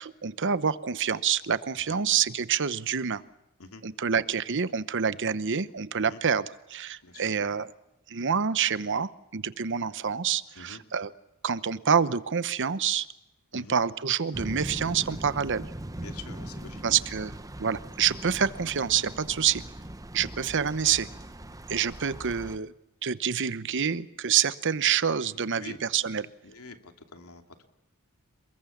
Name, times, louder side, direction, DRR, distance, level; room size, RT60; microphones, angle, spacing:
voice 1, 0.0-3.2 3.8-7.7 8.1-11.1 11.4-13.1 13.5-15.6 16.8-17.3 17.6-19.6 20.1-21.1 21.7-22.7 23.0-26.3, right 7 dB, 55° right, 15 dB, 0.9 m, -27 dB
sound 1, 14.3-22.6, right 1 dB, 15° right, 1.0 m, -40 dB
voice 2, 16.0-16.8 25.6-25.8 26.4-27.7, left 4 dB, 80° left, 5 dB, 2.6 m, -46 dB
29.0 x 21.5 x 7.2 m, 0.91 s
head